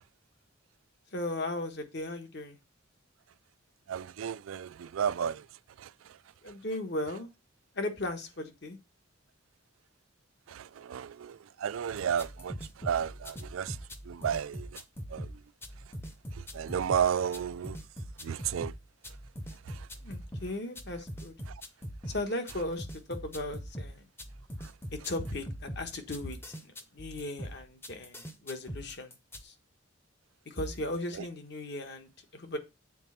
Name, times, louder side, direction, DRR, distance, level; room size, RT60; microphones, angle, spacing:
voice 1, 1.1-2.6 6.4-7.3 7.7-8.8 20.0-21.3 22.1-24.0 24.9-29.1 29.4-29.5 30.4-32.6, left 1 dB, 55° left, 1.3 m, -37 dB
voice 2, 3.9-5.4 5.8-5.9 10.5-13.8 14.1-14.7 15.1-15.3 16.5-17.8 18.2-18.7, right 8 dB, 80° right, 0.4 m, -32 dB
sound 1, 12.0-29.4, equal, 10° left, 0.7 m, -42 dB
7.3 x 4.2 x 5.6 m
head